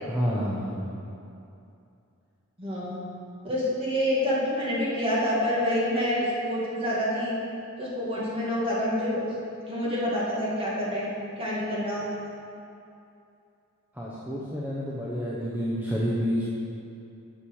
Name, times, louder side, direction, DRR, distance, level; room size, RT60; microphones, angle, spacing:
voice 1, 0.1-0.9 13.9-16.4, equal, 10° right, -7 dB, 1.0 m, -29 dB
voice 2, 2.6-3.0 3.4-7.3 7.8-9.2 9.7-11.1 11.4-12.1, equal, 25° right, -6 dB, 2.3 m, -27 dB
8.8 x 6.7 x 6.4 m, 2.7 s
head